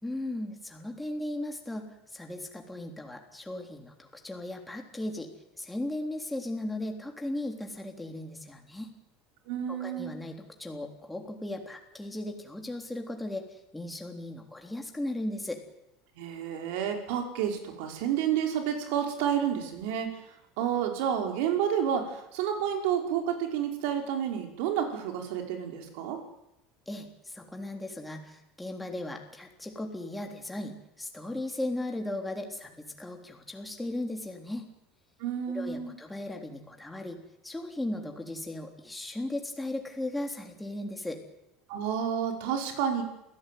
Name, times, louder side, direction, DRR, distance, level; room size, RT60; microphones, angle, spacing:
voice 1, 0.0-1.9 2.1-5.3 5.6-8.9 9.7-15.6 26.9-34.7 35.5-41.2, left 1 dB, 5° left, 3 dB, 3.6 m, -37 dB
voice 2, 9.5-10.1 16.2-20.1 20.6-26.2 35.2-35.9 41.7-43.0, right 9 dB, 75° right, 3 dB, 5.2 m, -30 dB
27.5 x 17.0 x 9.4 m, 0.88 s
supercardioid pair, 140°, 0 cm